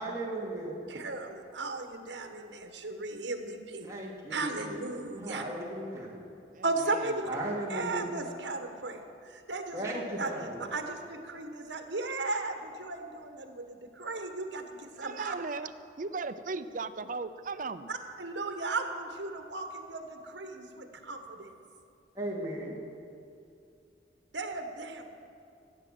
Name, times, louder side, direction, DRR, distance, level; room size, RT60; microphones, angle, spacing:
voice 1, 0.0-0.9 3.8-6.2 7.2-8.1 9.7-10.7 22.1-22.8, right 1 dB, 15° right, -4 dB, 2.5 m, -37 dB
voice 2, 0.9-3.9 4.3-5.4 6.6-7.3 7.7-10.3 10.6-15.3 17.9-21.5 24.3-25.0, right 3 dB, 75° right, 5 dB, 1.4 m, -36 dB
voice 3, 6.5-7.2 15.0-17.9, right 4 dB, 45° right, 11 dB, 0.6 m, -37 dB
15.5 x 8.5 x 7.6 m, 2.5 s
head